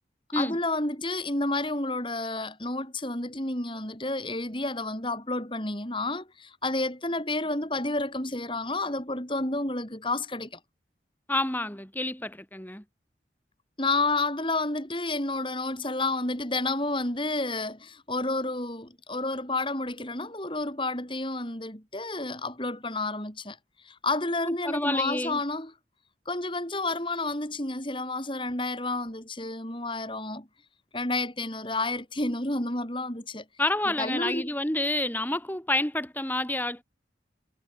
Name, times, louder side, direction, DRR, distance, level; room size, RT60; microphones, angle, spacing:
voice 1, 0.4-10.6 13.8-23.6 23.8-25.7 26.2-30.5 30.9-33.4 33.9-34.5, left 2 dB, 30° left, 6.5 m, -30 dB
voice 2, 11.3-12.8 24.4-25.4 33.6-36.8, left 1 dB, 10° left, 4.6 m, -29 dB
head